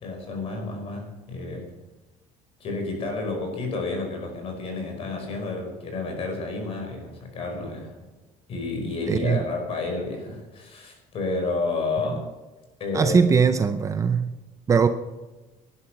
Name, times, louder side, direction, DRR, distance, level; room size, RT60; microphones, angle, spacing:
voice 1, 0.0-1.7 2.6-8.0 8.5-12.3 12.8-13.4, left 3 dB, 40° left, 5.3 m, -30 dB
voice 2, 9.1-9.4 12.9-14.4 14.7-14.9, right 6 dB, 20° right, 0.7 m, -20 dB
18.5 x 11.5 x 6.0 m
cardioid pair, 175°, 14 cm